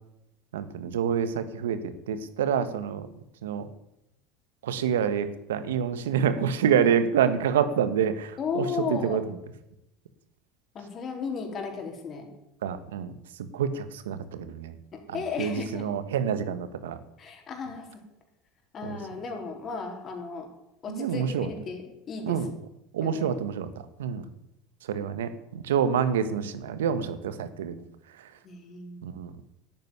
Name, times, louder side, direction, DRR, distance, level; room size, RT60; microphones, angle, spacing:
voice 1, 0.5-1.8 2.1-3.1 3.4-3.6 4.6-9.2 12.6-13.1 13.5-14.7 15.4-17.0 20.9-21.5 22.3-22.5 22.9-23.7 24.0-24.2 24.9-27.8 29.0-29.3, right 8 dB, 85° right, 12 dB, 1.4 m, -27 dB
voice 2, 8.4-9.3 10.7-12.3 14.9-15.9 17.2-18.0 18.7-20.5 20.8-22.5 23.0-23.3 28.4-29.0, left 5 dB, 40° left, 3 dB, 4.2 m, -35 dB
11.5 x 9.3 x 9.5 m, 0.86 s
hypercardioid pair, 85°, 0 cm